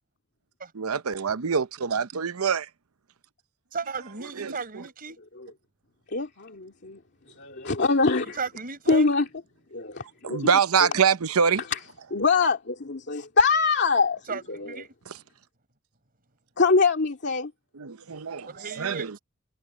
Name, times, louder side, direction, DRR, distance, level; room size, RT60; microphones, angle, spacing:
voice 1, 0.8-2.7 4.4-4.6 10.2-11.6 17.8-18.5 18.8-19.2, right 6 dB, 85° right, 0.7 m, -24 dB
voice 2, 3.7-5.2 8.4-9.1 14.3-14.9 18.5-19.2, right 5 dB, 45° right, 4.8 m, -35 dB
voice 3, 6.1-7.0 7.4-8.4 8.9-9.3 9.7-10.5 11.7-11.8 12.1-14.8 16.6-17.5, left 4 dB, 55° left, 2.4 m, -24 dB
head